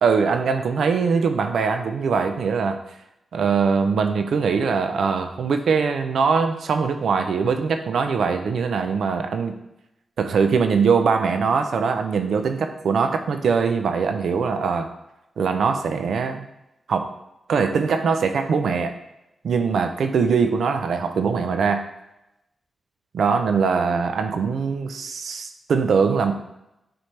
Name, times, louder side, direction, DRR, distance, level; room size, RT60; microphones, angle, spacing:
voice 1, 0.0-2.8 3.3-9.6 10.2-14.9 15.4-16.5 16.9-17.1 17.5-18.9 19.4-21.8 23.1-26.3, right 5 dB, 80° right, 7 dB, 0.5 m, -22 dB
7.5 x 4.3 x 3.3 m, 0.88 s
wide cardioid pair, 105°, 0 cm